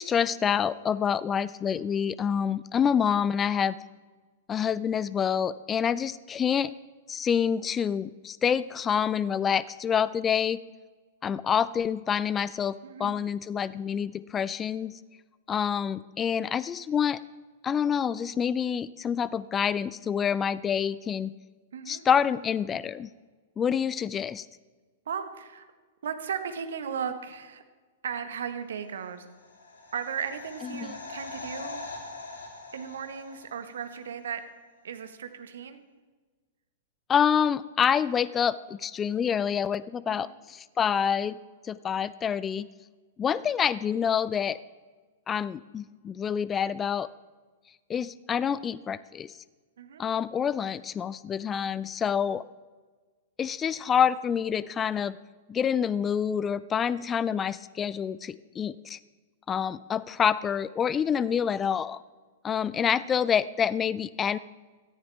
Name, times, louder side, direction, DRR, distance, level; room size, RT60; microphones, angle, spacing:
voice 1, 0.0-3.8 4.5-6.7 7.1-10.6 11.2-15.0 15.5-17.2 17.6-21.3 21.9-23.1 23.6-24.5 30.7-30.9 37.1-41.4 41.6-42.7 43.2-44.6 45.3-47.1 47.9-49.4 50.0-52.4 53.4-55.2 55.5-59.0 59.5-62.0 62.4-64.4, left 7 dB, 20° left, 18 dB, 0.4 m, -27 dB
voice 2, 12.8-13.2 21.7-22.0 25.1-25.7 26.0-27.6 28.0-29.3 29.9-31.8 32.7-34.4 34.8-35.8 40.1-40.3 49.8-50.0 63.0-63.1, right 7 dB, 70° right, 9 dB, 1.4 m, -36 dB
sound 1, 29.1-34.0 34.2-34.3, left 3 dB, 70° left, 3.3 m, -43 dB
17.5 x 13.5 x 3.5 m, 1.4 s
figure-of-eight pair, 105°, 0 cm